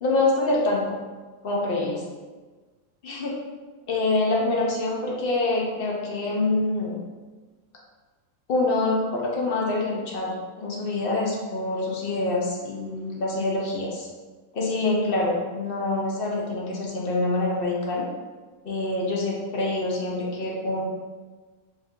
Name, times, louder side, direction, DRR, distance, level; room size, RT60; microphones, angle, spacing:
voice 1, 0.0-0.9 1.4-2.0 3.0-3.4 3.9-7.0 8.5-14.1 14.5-18.0 18.6-20.8, left 2 dB, 50° left, -2 dB, 0.7 m, -25 dB
3.6 x 2.7 x 3.6 m, 1.3 s
omnidirectional pair, 1.6 m